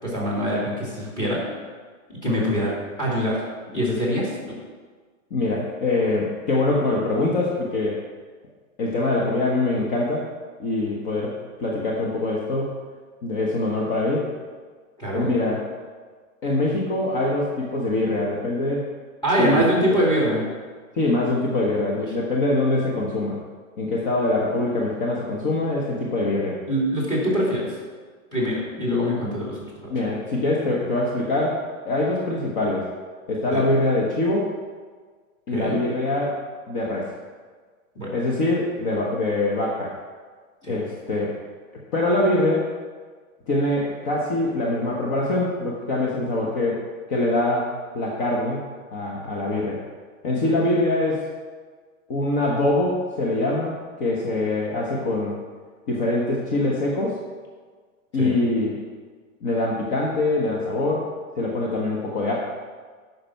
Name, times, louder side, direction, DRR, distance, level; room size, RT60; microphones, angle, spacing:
voice 1, 0.0-1.4 2.2-3.4 3.7-4.6 15.0-15.3 19.2-20.4 21.9-22.1 26.7-27.7 28.3-29.9 33.5-33.7 35.5-35.8 38.0-38.2 40.6-40.8 58.2-58.4, equal, 10° left, -4 dB, 2.4 m, -24 dB
voice 2, 5.3-8.0 8.8-10.3 10.6-11.3 11.6-12.7 13.2-14.3 15.1-15.6 16.4-18.9 19.4-19.7 20.9-23.4 23.8-26.6 29.9-32.9 33.3-34.5 35.5-36.4 36.7-37.1 38.1-39.9 40.7-41.3 41.9-42.7 43.5-46.8 47.1-47.7 47.9-48.6 48.9-49.8 50.2-51.2 52.1-55.4 55.9-57.2 58.1-58.8 59.4-61.1 61.4-62.3, left 2 dB, 35° left, -3 dB, 1.3 m, -23 dB
8.7 x 6.0 x 5.7 m, 1.5 s
hypercardioid pair, 160°, 42 cm